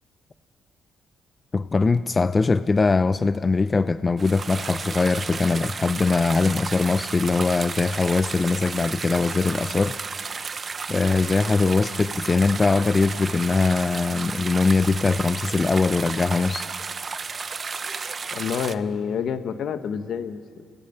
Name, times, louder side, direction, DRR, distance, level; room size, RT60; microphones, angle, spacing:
voice 1, 1.5-10.3 10.9-16.7, left 4 dB, 30° left, 13 dB, 0.5 m, -22 dB
sound 1, 4.2-18.8, right 5 dB, 40° right, 0.8 m, -33 dB
voice 2, 18.3-20.4, left 7 dB, 70° left, 9 dB, 1.3 m, -28 dB
29.0 x 17.5 x 5.7 m, 2.2 s
cardioid pair, 90°, 0 cm